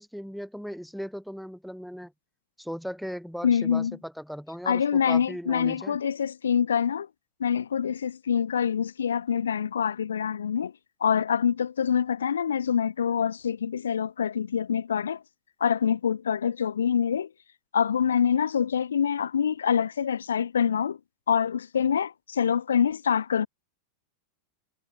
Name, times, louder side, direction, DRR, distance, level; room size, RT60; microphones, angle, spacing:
voice 1, 0.0-2.1 2.6-6.0, equal, ahead, 0.5 m, -37 dB
voice 2, 3.4-4.0 4.7-7.1 7.4-10.7 11.0-15.2 15.6-17.3 17.7-21.0 21.3-23.5, left 7 dB, 70° left, 0.9 m, -25 dB
figure-of-eight pair, 90°, 0 cm